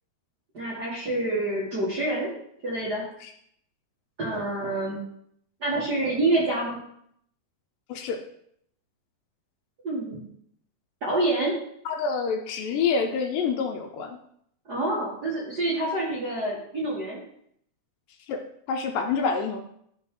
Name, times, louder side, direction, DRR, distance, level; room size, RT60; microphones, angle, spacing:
voice 1, 0.5-2.3 2.6-3.0 4.2-5.0 5.6-6.8 9.8-10.2 11.0-11.5 14.7-17.2, right 2 dB, 40° right, -7 dB, 1.5 m, -27 dB
voice 2, 7.9-8.2 11.9-14.2 18.3-18.4 18.7-19.6, left 5 dB, 75° left, 4 dB, 2.3 m, -27 dB
12.0 x 4.1 x 3.7 m, 0.69 s
omnidirectional pair, 4.2 m